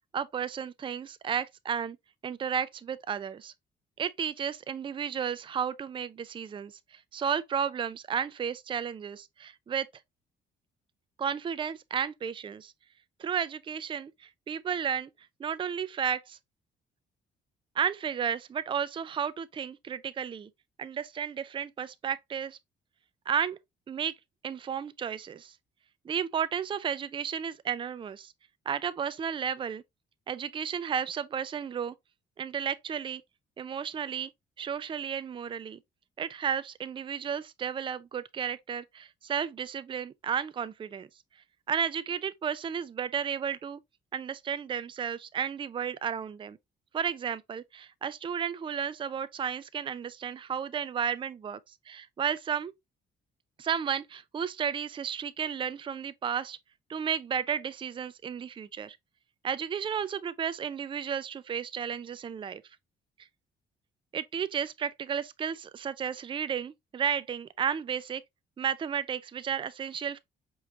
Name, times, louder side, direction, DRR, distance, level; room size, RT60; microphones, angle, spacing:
voice 1, 0.1-2.0 2.2-3.5 4.0-9.9 11.2-12.7 13.2-15.1 15.4-16.4 17.8-20.5 20.8-22.6 23.3-23.6 23.9-24.1 24.4-25.6 26.0-28.3 28.7-29.8 30.3-31.9 32.4-33.2 33.6-34.3 34.6-35.8 36.2-41.1 41.7-43.8 44.1-46.6 46.9-52.7 53.6-56.6 56.9-59.0 59.4-62.6 64.1-68.2 68.6-70.2, right 7 dB, 25° right, 0.3 m, -33 dB
4.9 x 3.1 x 2.4 m
cardioid pair, 90°, 20 cm